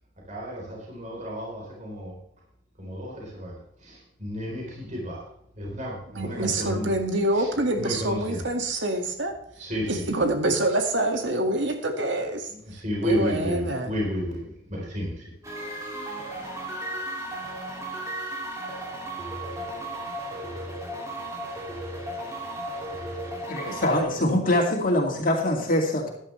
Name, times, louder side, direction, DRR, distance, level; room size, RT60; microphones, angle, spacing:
voice 1, 0.3-2.2 2.8-5.2 5.5-6.9 7.3-7.5 7.8-8.5 9.6-10.2 12.5-15.3, equal, 40° right, -3 dB, 3.9 m, -32 dB
voice 2, 6.1-9.3 9.9-12.5 13.0-13.9, right 1 dB, 70° right, 5 dB, 2.0 m, -26 dB
sound 1, 15.4-24.0, right 1 dB, 15° right, 2.5 m, -35 dB
voice 3, 23.5-26.1, left 1 dB, 45° left, 0 dB, 2.4 m, -23 dB
14.0 x 11.0 x 3.3 m, 0.75 s
head